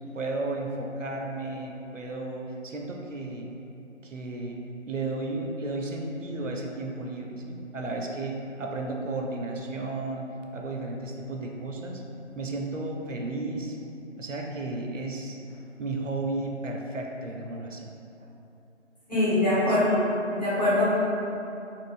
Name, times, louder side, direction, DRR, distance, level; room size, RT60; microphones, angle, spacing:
voice 1, 0.1-3.5 4.0-10.3 10.5-12.0 12.4-13.8 14.2-15.4 15.8-17.9 19.6-19.8, right 2 dB, 85° right, 1 dB, 0.6 m, -33 dB
voice 2, 19.1-20.0 20.3-20.9, left 1 dB, 35° left, -12 dB, 1.1 m, -23 dB
2.5 x 2.4 x 3.5 m, 2.8 s
figure-of-eight pair, 165°, 37 cm